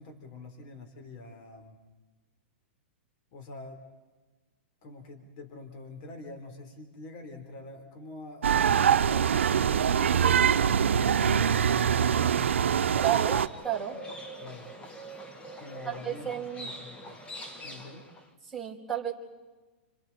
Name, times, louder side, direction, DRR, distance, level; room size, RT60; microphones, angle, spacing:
voice 1, 0.0-1.8 3.3-3.8 4.8-12.4 14.4-14.7 15.6-17.2 17.6-18.1, left 3 dB, 45° left, 4 dB, 4.1 m, -45 dB
sound 1, 8.4-13.5, right 8 dB, 90° right, 0.7 m, -24 dB
Livestock farm animals working animals, 12.9-18.3, equal, 15° left, 1.8 m, -44 dB
voice 2, 13.0-14.0 15.9-16.7 18.5-19.1, right 11 dB, ahead, 0 dB, 4.6 m, -32 dB
30.0 x 27.5 x 4.4 m, 1.2 s
hypercardioid pair, 140°, 6 cm